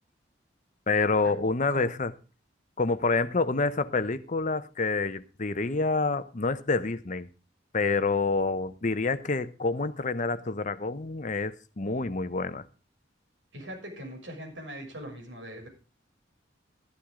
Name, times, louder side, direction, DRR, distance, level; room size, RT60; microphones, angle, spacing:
voice 1, 0.9-2.1 2.8-7.3 7.7-12.6, left 3 dB, 40° left, 0.8 m, -27 dB
voice 2, 13.5-15.7, equal, 75° right, 6.6 m, -41 dB
13.0 x 12.0 x 3.7 m
head